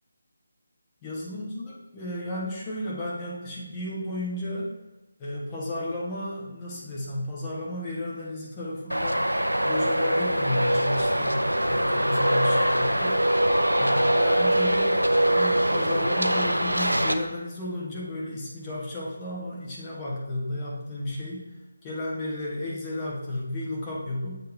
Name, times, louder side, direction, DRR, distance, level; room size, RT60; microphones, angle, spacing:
voice 1, 1.0-4.7 5.2-9.2 9.6-13.2 13.8-21.5 21.8-24.4, left 1 dB, 20° left, -6 dB, 1.2 m, -33 dB
Traffic noise roadway noise, 8.9-17.1, right 1 dB, 85° right, 0.4 m, -23 dB
8.0 x 3.3 x 3.5 m, 0.99 s
figure-of-eight pair, 155°, 0 cm